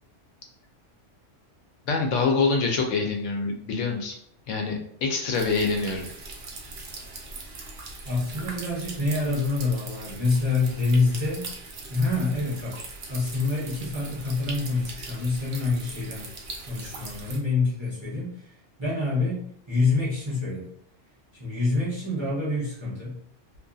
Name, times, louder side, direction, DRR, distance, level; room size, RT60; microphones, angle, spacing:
voice 1, 1.9-4.1 4.5-6.0, left 4 dB, 80° left, 2 dB, 0.9 m, -25 dB
sound 1, 5.3-17.4, right 3 dB, 60° right, 0.5 m, -40 dB
voice 2, 8.0-11.5 11.9-12.8 13.1-16.2 16.7-18.4 18.8-20.7 21.4-23.1, left 3 dB, 25° right, -8 dB, 0.8 m, -26 dB
2.6 x 2.5 x 2.3 m, 0.65 s
omnidirectional pair, 1.3 m